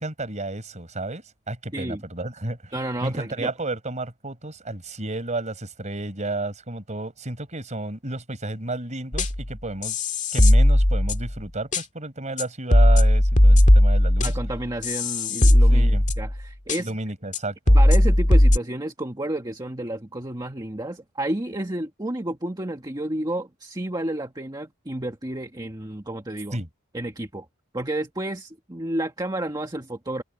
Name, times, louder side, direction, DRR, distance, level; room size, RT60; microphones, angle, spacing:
voice 1, 0.0-2.7 3.0-10.0 10.3-14.3 15.7-16.0 16.8-17.8 26.5-26.7, right 2 dB, 35° right, 4.7 m, -32 dB
voice 2, 1.7-2.0 2.7-3.5 14.2-15.9 16.2-16.9 17.7-26.6 26.9-27.5 27.7-30.2, right 1 dB, 20° right, 1.6 m, -31 dB
sound 1, 9.1-9.5 9.8-11.4 11.7-11.8 12.4-12.5 12.7-16.4 16.7-16.8 17.3-17.4 17.7-18.6, left 1 dB, 35° left, 1.9 m, -17 dB
head